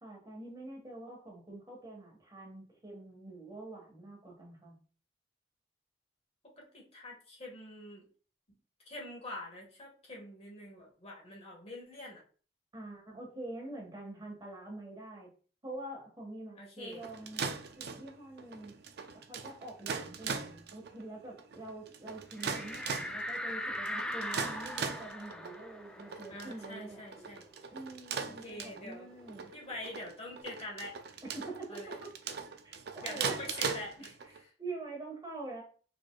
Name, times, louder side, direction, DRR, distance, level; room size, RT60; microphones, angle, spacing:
voice 1, 0.0-4.8 12.7-15.3 15.6-17.4 17.8-18.7 19.1-27.0 27.7-29.5 31.2-32.1 32.6-33.4 34.6-35.6, right 2 dB, 25° right, 0 dB, 1.5 m, -45 dB
voice 2, 6.4-8.1 8.8-12.2 16.6-17.0 26.3-27.4 28.3-29.1 29.5-30.9 31.7-32.0 33.0-34.5, left 1 dB, 35° left, -2 dB, 1.5 m, -45 dB
sound 1, 16.9-34.4, right 6 dB, 65° right, 0.5 m, -40 dB
sound 2, 22.4-27.6 27.9-28.0 28.3-30.0, left 1 dB, 5° left, 0.4 m, -41 dB
4.6 x 4.2 x 2.3 m, 0.40 s
head